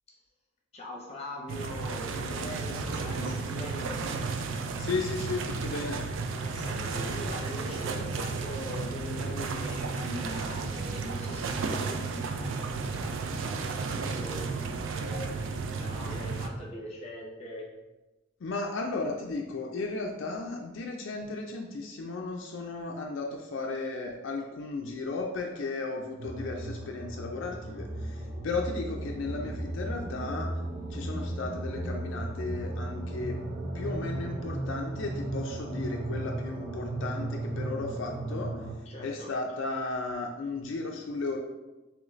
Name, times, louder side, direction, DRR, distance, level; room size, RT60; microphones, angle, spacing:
voice 1, 0.7-3.9 6.5-12.5 13.0-13.2 13.4-13.8 14.1-15.3 15.8-17.7 38.9-39.3, left 1 dB, 30° left, -1 dB, 0.7 m, -41 dB
sound 1, 1.5-16.5, right 4 dB, 75° right, 0.4 m, -33 dB
voice 2, 4.8-6.0 18.4-30.5 30.9-33.4 33.7-38.6 39.0-41.4, left 3 dB, 70° left, 1 dB, 0.4 m, -35 dB
sound 2, 26.2-38.7, right 2 dB, 45° right, 0.7 m, -35 dB
3.8 x 3.0 x 3.1 m, 1.1 s
head